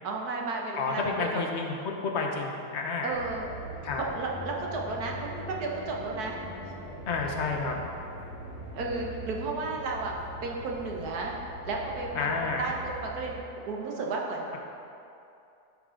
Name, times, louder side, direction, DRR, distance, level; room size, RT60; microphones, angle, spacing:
voice 1, 0.0-1.4 3.0-3.4 4.0-6.4 6.6-6.7 8.7-10.1 10.4-11.3 11.6-14.5, right 3 dB, 75° right, -1 dB, 1.5 m, -33 dB
voice 2, 0.8-3.1 3.8-4.0 7.1-7.8 12.1-12.6, left 4 dB, 50° left, 1 dB, 1.1 m, -30 dB
sound 1, 3.1-13.4, equal, 55° right, 2.6 m, -42 dB
12.0 x 5.4 x 3.8 m, 2.6 s
omnidirectional pair, 1.7 m